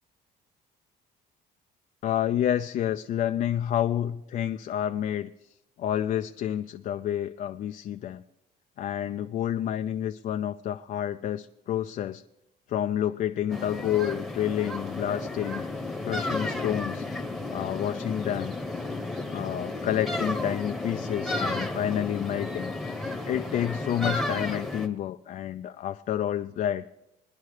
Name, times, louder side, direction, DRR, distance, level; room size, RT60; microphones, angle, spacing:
voice 1, 2.0-5.3 5.8-8.2 8.8-12.2 12.7-15.7 16.0-17.1 17.5-18.5 19.3-22.7 23.2-26.9, left 10 dB, 45° left, 7 dB, 0.4 m, -29 dB
sound 1, 13.5-24.9, left 2 dB, ahead, 1.0 m, -33 dB
21.5 x 10.5 x 3.2 m, 0.90 s
cardioid pair, 120°, 18 cm